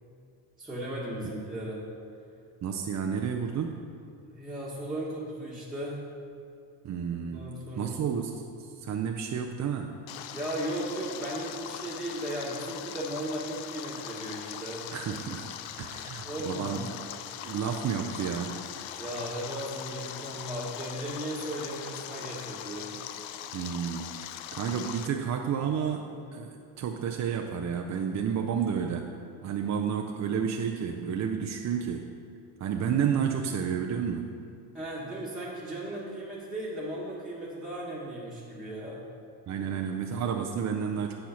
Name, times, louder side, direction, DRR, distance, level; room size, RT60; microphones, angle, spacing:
voice 1, 0.6-1.8 4.3-6.1 7.1-8.0 10.3-14.8 16.2-16.8 19.0-22.9 34.7-39.0, right 1 dB, ahead, -8 dB, 1.2 m, -36 dB
voice 2, 2.6-3.8 6.8-7.5 7.8-10.0 14.9-15.5 15.8-16.9 17.4-18.6 23.5-29.1 29.4-32.1 32.6-34.3 39.5-41.1, right 7 dB, 40° right, 3 dB, 0.4 m, -31 dB
Stream, 10.1-25.1, left 10 dB, 90° left, 0.5 m, -41 dB
8.5 x 4.5 x 5.6 m, 2.4 s
cardioid pair, 120°, 45 cm